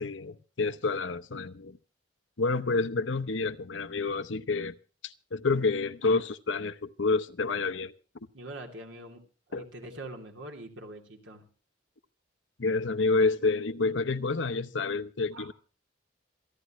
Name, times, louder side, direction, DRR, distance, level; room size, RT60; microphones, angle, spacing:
voice 1, 0.0-1.8 2.4-4.7 5.0-7.9 9.5-9.7 12.6-15.5, left 3 dB, 80° left, 0.8 m, -29 dB
voice 2, 8.3-9.2 9.5-11.5 15.3-15.5, right 1 dB, 85° right, 2.9 m, -43 dB
27.5 x 11.0 x 3.1 m
head